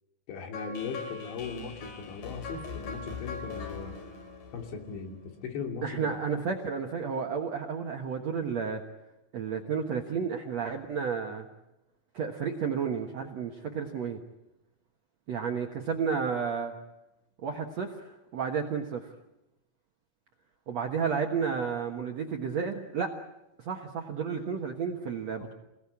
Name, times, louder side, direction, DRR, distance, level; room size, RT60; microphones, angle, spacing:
voice 1, 0.3-4.0 4.5-6.1 25.4-25.5, left 5 dB, 80° left, 3 dB, 5.3 m, -38 dB
sound 1, 0.5-5.5, left 5 dB, 55° left, 3.7 m, -41 dB
voice 2, 5.8-8.8 9.3-11.5 12.1-14.2 15.3-16.7 17.4-19.1 20.7-23.1 23.6-25.5, right 6 dB, 65° right, 3 dB, 1.7 m, -32 dB
27.5 x 18.0 x 8.6 m, 0.96 s
omnidirectional pair, 5.1 m